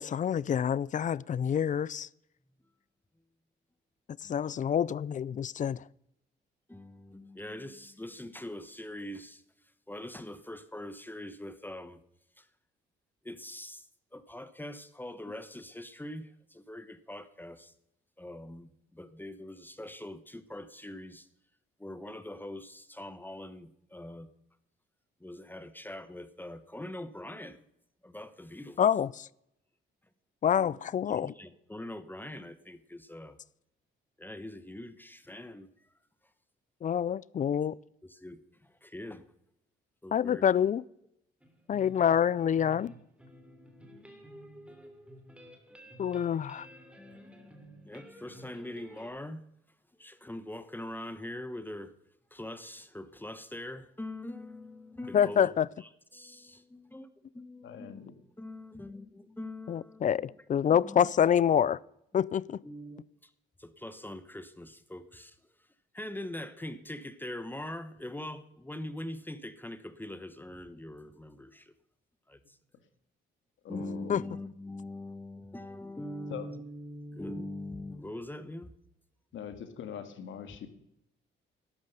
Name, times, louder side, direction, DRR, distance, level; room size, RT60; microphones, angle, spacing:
voice 1, 0.0-2.1 4.2-5.8 28.8-29.3 30.4-31.3 36.8-37.8 40.1-40.8 41.7-42.9 46.0-46.7 55.1-55.7 59.7-61.8 62.1-62.6 73.7-73.8 74.1-74.2, left 8 dB, 40° left, 0.4 m, -27 dB
voice 2, 6.7-9.4 9.9-12.0 12.4-12.5 13.2-13.9 14.1-17.7 18.2-21.3 21.8-24.3 25.2-27.6 28.0-28.8 30.5-30.8 31.1-33.4 34.2-35.7 38.0-39.3 40.0-40.5 47.0-49.4 50.0-51.9 52.3-55.5 55.8-60.4 60.7-61.1 62.6-63.3 63.6-65.4 65.9-71.7 72.3-72.6 73.7-78.7, left 1 dB, 10° left, 0.9 m, -43 dB
sound 1, 41.4-49.1, right 1 dB, 5° right, 3.0 m, -52 dB
voice 3, 57.6-58.1 73.6-74.2 76.3-76.5 79.3-80.7, left 8 dB, 75° left, 1.9 m, -42 dB
12.0 x 9.5 x 6.7 m
cardioid pair, 90°, 20 cm